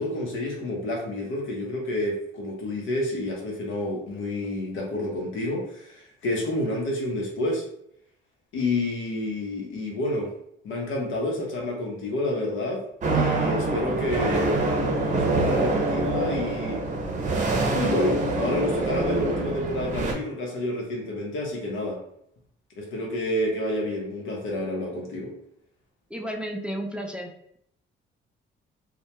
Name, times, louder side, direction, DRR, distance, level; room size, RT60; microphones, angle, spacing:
voice 1, 0.0-7.6 8.5-10.3 10.6-12.8 13.1-16.8 17.7-22.0 22.8-25.3, left 1 dB, 85° left, -1 dB, 0.8 m, -29 dB
sound 1, 13.0-20.1, right 3 dB, 40° right, 0.6 m, -25 dB
voice 2, 26.1-27.6, equal, 5° right, 2 dB, 0.3 m, -33 dB
2.2 x 2.1 x 2.8 m, 0.72 s
cardioid pair, 90°, 20 cm